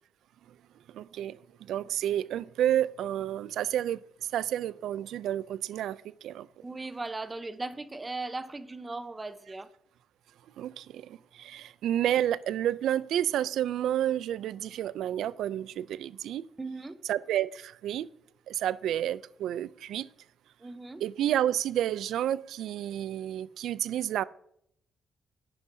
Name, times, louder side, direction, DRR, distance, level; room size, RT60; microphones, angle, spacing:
voice 1, 0.9-4.0 4.3-6.5 10.6-16.4 17.1-18.1 18.5-20.1 21.0-24.2, right 11 dB, 85° right, 0.3 m, -30 dB
voice 2, 6.6-9.7 16.6-17.0 20.6-21.0, right 3 dB, 25° right, 0.8 m, -38 dB
10.5 x 9.8 x 2.7 m
cardioid pair, 80°, 0 cm